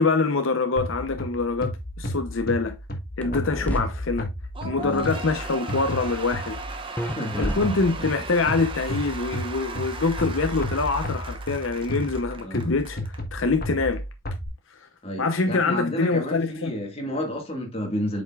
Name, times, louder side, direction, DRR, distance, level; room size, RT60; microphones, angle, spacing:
voice 1, 0.0-2.8 3.2-4.3 4.6-6.6 7.4-13.0 13.3-14.0 15.2-16.7, left 3 dB, 70° left, 0.7 m, -25 dB
sound 1, 0.8-6.8 7.6-14.5, equal, 45° left, 1.3 m, -33 dB
sound 2, 3.2-3.8 7.0-8.1, equal, 5° left, 0.5 m, -29 dB
Cheering / Applause / Crowd, 4.5-13.2, right 3 dB, 25° right, 0.9 m, -37 dB
voice 2, 4.7-5.1 7.1-7.5 12.4-12.7 15.0-18.2, equal, 30° left, 1.7 m, -31 dB
8.0 x 5.3 x 2.4 m
head